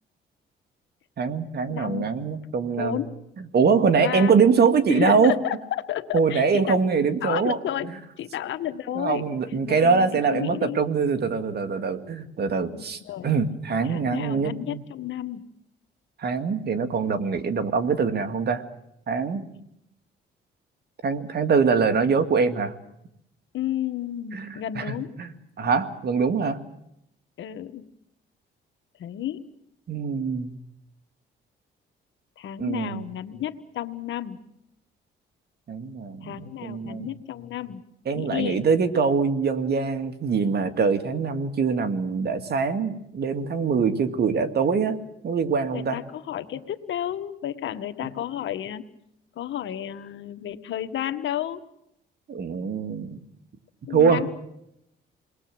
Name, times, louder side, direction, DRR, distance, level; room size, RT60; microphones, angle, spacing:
voice 1, 1.2-3.0 3.4-5.4 6.1-7.6 7.8-7.9 8.9-14.8 16.2-18.6 19.1-19.5 21.0-22.7 24.3-25.3 25.6-26.6 29.9-30.6 32.6-33.0 35.7-37.1 38.1-45.0 45.2-46.0 48.0-48.1 52.3-53.2 53.9-54.2, right 5 dB, 55° right, 8 dB, 2.5 m, -23 dB
voice 2, 1.7-2.1 2.8-3.1 4.0-4.4 4.9-6.8 7.2-9.2 9.7-10.8 12.6-13.3 13.8-15.5 23.5-25.1 27.4-27.8 29.0-29.4 32.4-34.4 36.2-37.8 38.1-38.6 45.7-48.8 49.3-51.6 53.9-54.3, left 11 dB, 70° left, 9 dB, 1.6 m, -32 dB
29.0 x 21.0 x 7.9 m, 0.81 s
cardioid pair, 90°, 20 cm